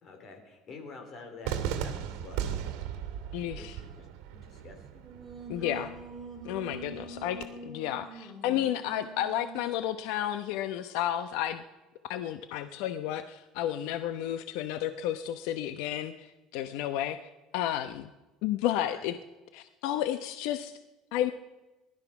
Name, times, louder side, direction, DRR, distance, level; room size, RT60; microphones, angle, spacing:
voice 1, 0.0-2.7 3.6-5.0 18.7-19.0, left 4 dB, 35° left, 4 dB, 3.7 m, -48 dB
Cheering / Fireworks, 1.4-7.4, right 9 dB, 75° right, 2.1 m, -38 dB
voice 2, 3.3-3.8 5.5-5.9 6.4-7.4 7.7-11.6 12.1-17.2 17.5-18.1 18.4-19.2 19.5-20.8 21.1-21.3, left 12 dB, 75° left, 10 dB, 0.9 m, -32 dB
Singing, 4.9-9.8, right 3 dB, 5° right, 3.3 m, -45 dB
19.5 x 12.5 x 6.0 m, 1.1 s
cardioid pair, 145°, 0 cm